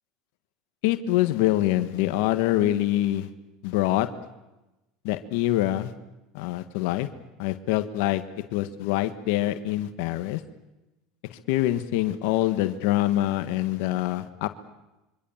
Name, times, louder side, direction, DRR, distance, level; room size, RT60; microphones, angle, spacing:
voice 1, 0.8-3.3 3.6-4.1 5.0-5.9 6.3-7.1 7.4-8.2 8.5-10.4 11.3-14.5, left 15 dB, 75° left, 10 dB, 1.5 m, -25 dB
26.5 x 24.5 x 7.3 m, 1.0 s
supercardioid pair, 100°, 0 cm